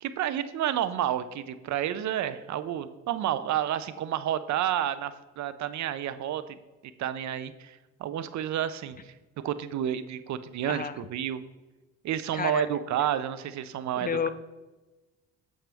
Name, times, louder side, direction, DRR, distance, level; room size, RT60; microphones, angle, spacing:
voice 1, 0.0-6.5 7.0-9.1 9.4-11.4 12.0-14.3, right 11 dB, 70° right, 14 dB, 0.6 m, -30 dB
voice 2, 10.7-11.0 12.3-12.8 14.0-14.3, left 6 dB, 30° left, 12 dB, 0.5 m, -31 dB
8.9 x 6.4 x 3.5 m, 1.1 s
cardioid pair, 90°, 30 cm